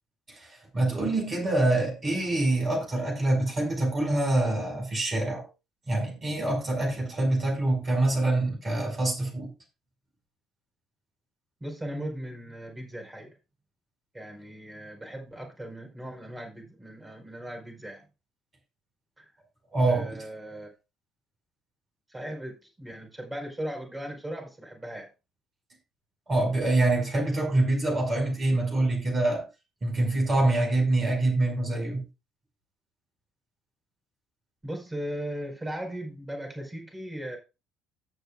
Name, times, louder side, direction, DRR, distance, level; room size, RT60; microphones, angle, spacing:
voice 1, 0.3-5.5 5.9-9.5 19.7-20.2 26.3-29.4 29.8-32.0, right 2 dB, 35° right, 5.3 m, -25 dB
voice 2, 11.6-13.4 14.1-18.0 19.2-19.3 19.9-20.7 22.1-25.1 34.6-37.4, right 1 dB, 15° right, 5.0 m, -38 dB
18.0 x 6.7 x 2.4 m
figure-of-eight pair, 50°, 0 cm